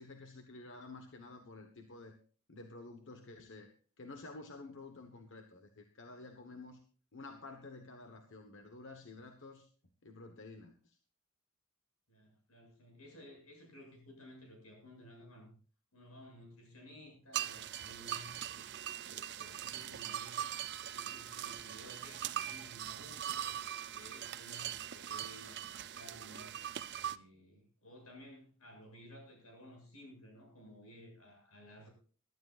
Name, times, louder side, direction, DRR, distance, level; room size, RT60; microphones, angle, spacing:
voice 1, 0.0-2.2 2.5-6.8 7.1-9.7 10.0-11.0, left 3 dB, 60° left, 5 dB, 1.2 m, -51 dB
voice 2, 12.1-15.6 15.9-20.5 20.9-23.4 23.9-26.6 26.9-31.9, equal, 85° left, 2 dB, 7.4 m, -55 dB
sound 1, 17.3-27.2, right 10 dB, 50° right, 0.5 m, -41 dB
22.5 x 12.5 x 2.5 m, 0.40 s
head